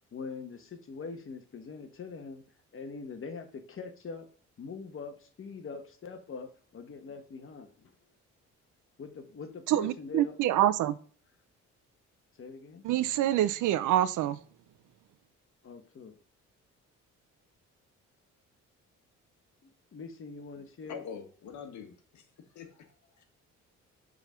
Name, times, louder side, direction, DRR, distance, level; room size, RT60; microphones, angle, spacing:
voice 1, 0.1-2.4 2.7-4.3 4.6-7.9 9.0-10.4 12.4-12.8 15.6-16.2 19.6-21.0, left 4 dB, 45° left, 1.4 m, -43 dB
voice 2, 9.7-10.9 12.8-14.4, right 12 dB, 85° right, 0.6 m, -26 dB
voice 3, 20.8-23.2, left 6 dB, 70° left, 1.5 m, -45 dB
6.8 x 4.0 x 5.7 m
cardioid pair, 90°, 30 cm